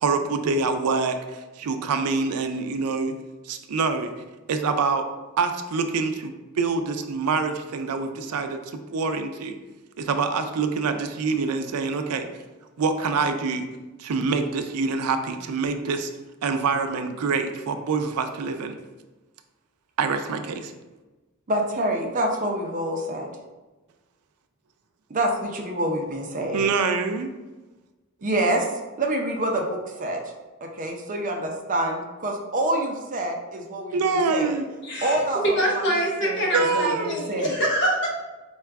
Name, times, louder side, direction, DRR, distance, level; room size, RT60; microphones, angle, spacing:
voice 1, 0.0-3.1 3.4-4.1 4.5-5.1 5.4-8.6 8.9-9.6 10.0-12.3 12.8-13.7 14.0-16.1 16.4-18.8 20.0-20.7 26.5-27.3 33.9-34.6 36.5-37.2, right 4 dB, 90° right, 7 dB, 0.4 m, -25 dB
voice 2, 21.5-23.3 25.1-26.7 28.2-28.7 29.0-30.2 30.6-34.6 35.0-35.4 35.7-37.6, right 1 dB, 35° right, 1 dB, 0.5 m, -27 dB
voice 3, 34.8-38.1, right 1 dB, 55° left, -3 dB, 1.0 m, -25 dB
4.7 x 2.2 x 3.4 m, 1.2 s
head